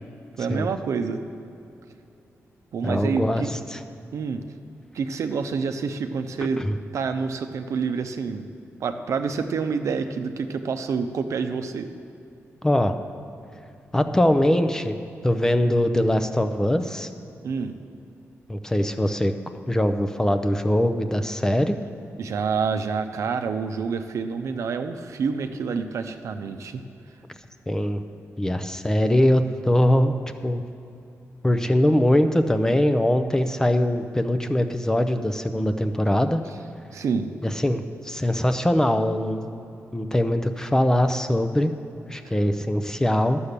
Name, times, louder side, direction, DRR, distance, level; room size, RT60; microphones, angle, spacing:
voice 1, 0.4-1.2 2.7-3.5 4.1-4.4 4.9-6.6 6.9-8.4 8.8-11.9 17.4-17.7 22.2-26.8 36.9-37.3, right 5 dB, 75° right, 7 dB, 0.7 m, -27 dB
voice 2, 2.8-3.8 6.6-6.8 12.6-12.9 13.9-15.0 15.2-17.1 18.5-19.3 19.7-21.7 27.7-28.0 28.4-30.1 30.4-30.6 31.4-36.4 37.4-39.6 39.9-41.7 42.1-43.4, left 1 dB, 10° left, 8 dB, 0.5 m, -22 dB
11.5 x 7.0 x 6.7 m, 2.7 s
wide cardioid pair, 120°, 5 cm